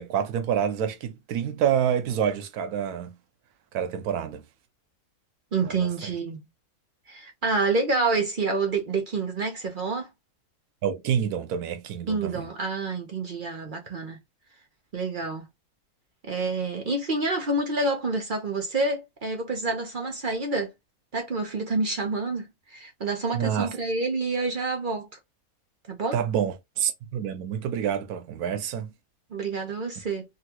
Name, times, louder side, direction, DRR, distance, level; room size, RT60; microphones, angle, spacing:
voice 1, 0.0-3.1 3.7-4.4 5.6-5.9 10.8-12.5 23.3-23.7 26.1-28.9, right 8 dB, 90° right, 1.1 m, -27 dB
voice 2, 5.5-6.4 7.1-10.1 12.1-14.2 14.9-15.4 16.2-20.7 21.1-25.1 25.9-26.2 29.3-30.2, right 3 dB, 45° right, 0.7 m, -28 dB
3.7 x 2.2 x 2.7 m
omnidirectional pair, 1.6 m